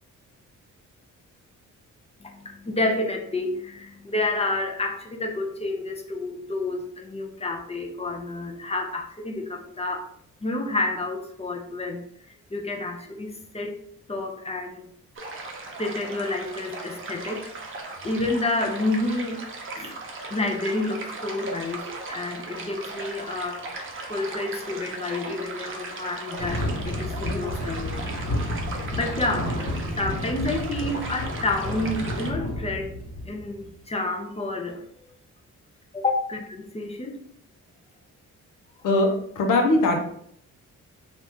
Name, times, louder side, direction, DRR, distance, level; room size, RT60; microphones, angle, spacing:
voice 1, 2.2-10.1 10.4-12.0 12.5-13.7 14.1-14.8 15.8-17.5 18.0-19.4 19.8-20.0 20.3-23.7 24.1-28.0 28.9-33.0 33.3-34.8 35.9-37.2, left 2 dB, 20° left, 2 dB, 0.5 m, -29 dB
sound 1, 15.2-32.3, right 2 dB, 40° right, 0.7 m, -37 dB
sound 2, 26.4-33.8, left 1 dB, 55° left, 1.2 m, -31 dB
voice 2, 39.4-40.0, left 2 dB, 85° left, 3 dB, 0.7 m, -20 dB
2.9 x 2.5 x 3.4 m, 0.67 s
cardioid pair, 85°, 31 cm